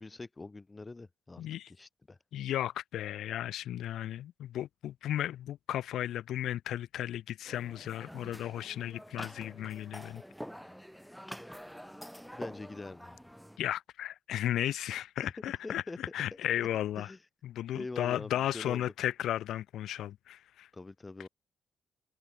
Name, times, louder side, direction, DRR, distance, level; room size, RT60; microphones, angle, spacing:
voice 1, 0.0-2.2 12.4-13.2 15.2-15.3 15.6-16.0 16.3-16.4 17.0-17.2 17.7-18.8 20.7-21.3, left 3 dB, 20° left, 3.7 m, -44 dB
voice 2, 1.4-1.7 2.3-10.2 13.6-17.1 17.4-20.7, left 12 dB, 80° left, 1.0 m, -35 dB
sound 1, 7.4-13.6, equal, ahead, 2.0 m, -47 dB
cardioid pair, 90°, 0 cm